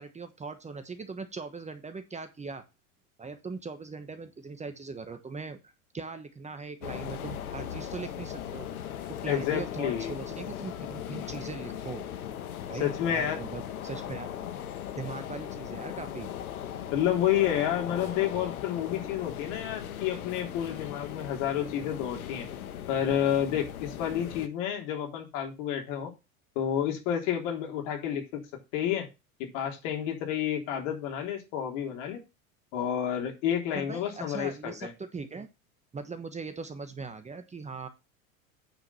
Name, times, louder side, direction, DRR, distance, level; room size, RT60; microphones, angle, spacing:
voice 1, 0.0-2.6 3.2-8.7 9.2-12.0 12.7-14.3 15.0-16.3 33.7-35.5 35.9-37.9, right 4 dB, 15° right, 9 dB, 1.2 m, -40 dB
sound 1, 6.8-24.5, left 10 dB, 80° left, 1.4 m, -38 dB
voice 2, 9.3-10.1 12.8-13.4 16.9-22.5 22.9-26.1 26.6-28.4 28.7-29.1 29.4-32.2 32.7-34.9, left 10 dB, 60° left, 2 dB, 3.6 m, -30 dB
9.2 x 5.1 x 5.5 m, 0.26 s
hypercardioid pair, 95°, 42 cm